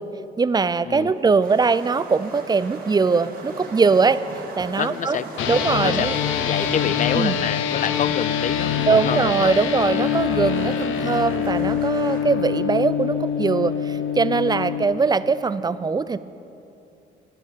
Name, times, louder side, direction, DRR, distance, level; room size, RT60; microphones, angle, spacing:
voice 1, 0.4-4.2 4.6-5.2 5.5-6.2 7.1-7.4 8.9-16.2, right 4 dB, 20° right, 15 dB, 0.4 m, -21 dB
sound 1, 1.1-12.2, right 3 dB, 45° right, 2.2 m, -38 dB
voice 2, 4.8-9.6, left 8 dB, 40° left, 17 dB, 0.4 m, -28 dB
sound 2, 5.4-14.8, left 8 dB, 85° left, 0.8 m, -24 dB
10.5 x 9.3 x 7.4 m, 2.8 s
cardioid pair, 90°, 20 cm